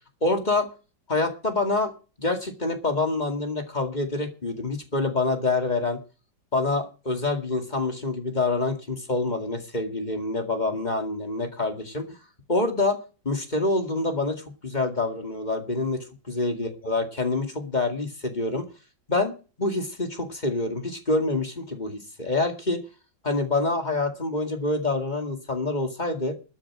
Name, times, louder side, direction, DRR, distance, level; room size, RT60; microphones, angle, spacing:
voice 1, 0.2-0.7 1.1-1.9 2.2-6.0 6.5-12.2 12.5-13.0 13.2-18.7 19.1-19.3 19.6-22.8 23.2-26.3, left 2 dB, 25° left, 6 dB, 2.2 m, -26 dB
13.5 x 7.4 x 7.6 m, 0.35 s
omnidirectional pair, 2.1 m